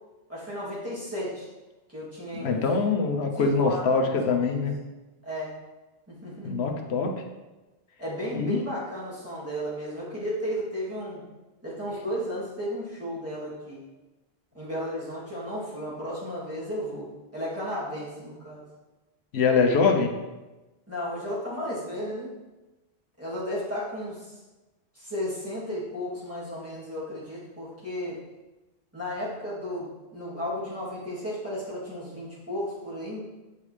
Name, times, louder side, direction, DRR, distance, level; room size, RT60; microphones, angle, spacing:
voice 1, 0.3-1.5 1.9-2.6 3.4-4.3 5.2-5.5 6.1-6.5 8.0-11.2 11.6-13.8 14.5-17.1 17.3-18.6 20.9-22.3 23.2-24.3 24.9-28.2 28.9-33.2, equal, 15° right, -9 dB, 2.7 m, -34 dB
voice 2, 2.3-4.8 6.4-7.2 8.3-8.6 19.3-20.1, left 4 dB, 85° left, 3 dB, 1.0 m, -24 dB
8.1 x 5.6 x 3.3 m, 1.1 s
omnidirectional pair, 1.1 m